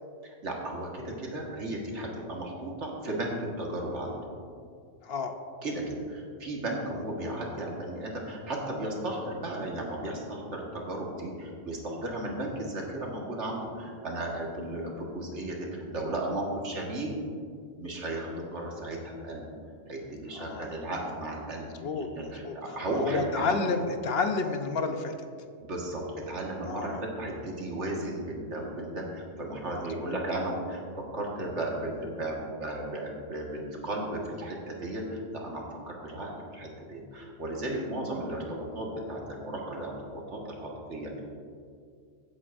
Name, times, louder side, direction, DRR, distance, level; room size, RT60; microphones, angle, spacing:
voice 1, 0.2-4.2 5.6-17.1 17.8-19.4 19.9-23.6 25.6-41.2, right 1 dB, 65° right, -2 dB, 1.9 m, -35 dB
voice 2, 5.0-5.3 20.3-20.8 21.6-22.1 22.4-22.5 22.9-25.1 26.7-27.0 29.7-30.1 37.7-37.9, left 4 dB, 60° left, 6 dB, 0.9 m, -31 dB
16.0 x 8.1 x 2.6 m, 2.3 s
omnidirectional pair, 1.3 m